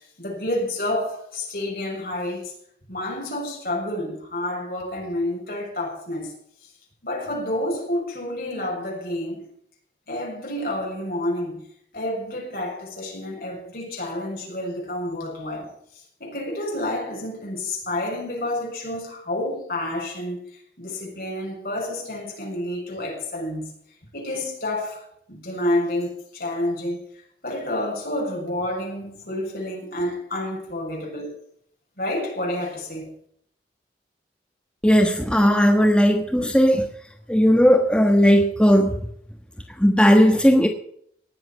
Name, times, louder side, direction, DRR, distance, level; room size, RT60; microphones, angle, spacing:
voice 1, 0.2-2.5 2.9-6.3 7.0-9.4 10.1-11.7 11.9-15.7 16.2-20.4 20.8-23.7 24.1-27.0 27.4-31.3 32.0-33.1, left 1 dB, 55° left, 6.8 m, -29 dB
voice 2, 34.8-36.9 37.3-39.0 39.8-40.7, equal, 5° left, 1.3 m, -16 dB
18.5 x 7.7 x 7.4 m
head